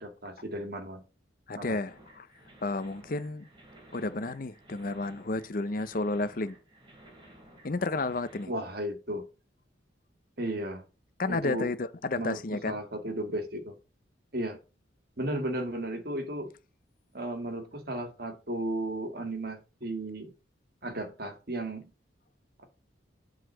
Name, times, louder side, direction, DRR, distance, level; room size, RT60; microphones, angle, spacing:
voice 1, 0.0-1.0 1.6-1.8 8.5-9.3 10.4-10.9 11.2-11.7 12.2-13.7 14.3-14.6 15.2-16.5 17.1-20.3 20.8-21.9, right 1 dB, 55° right, 1.8 m, -34 dB
voice 2, 1.5-2.3 2.6-3.5 3.9-6.6 7.6-8.5 11.2-12.8, left 3 dB, 50° left, 0.6 m, -32 dB
sound 1, 1.9-8.4, right 1 dB, 25° right, 3.0 m, -55 dB
7.8 x 4.0 x 6.8 m
head